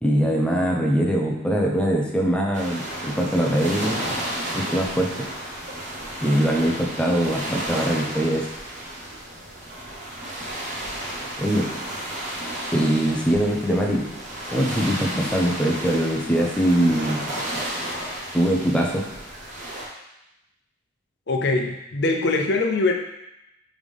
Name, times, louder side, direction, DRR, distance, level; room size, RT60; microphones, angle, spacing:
voice 1, 0.0-4.0 4.5-5.1 6.2-8.5 11.4-11.7 12.7-14.0 14.5-17.2 18.3-19.0, equal, 5° left, -1 dB, 0.7 m, -22 dB
sound 1, 2.5-19.9, right 1 dB, 40° right, 1.2 m, -32 dB
voice 2, 21.3-22.9, left 3 dB, 60° left, 2 dB, 0.7 m, -22 dB
4.9 x 3.7 x 5.3 m, 0.89 s
head